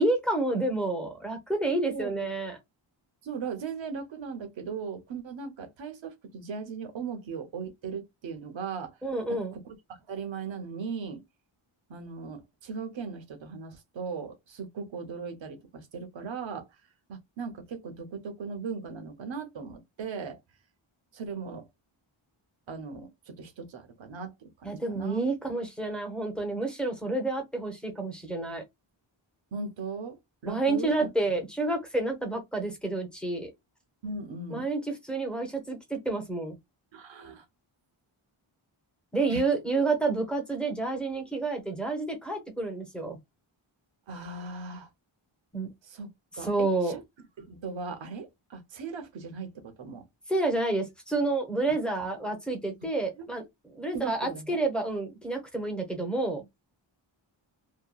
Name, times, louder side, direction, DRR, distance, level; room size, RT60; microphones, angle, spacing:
voice 1, 0.0-2.6 9.0-9.5 24.6-28.6 30.5-33.5 34.5-34.8 35.1-36.6 39.1-43.2 45.5-45.7 46.4-46.9 50.3-53.4 53.7-56.4, right 2 dB, ahead, 0.7 m, -29 dB
voice 2, 1.8-2.3 3.2-8.9 9.3-9.8 10.1-11.2 11.9-16.7 17.1-20.4 21.1-21.7 22.7-25.3 29.5-30.2 30.4-31.1 34.0-34.7 36.9-37.5 39.3-39.4 44.1-44.9 45.8-47.0 47.4-50.0 53.2-53.3 53.9-54.6, right 5 dB, 65° right, 0.8 m, -38 dB
2.8 x 2.2 x 2.2 m
wide cardioid pair, 155°, 50 cm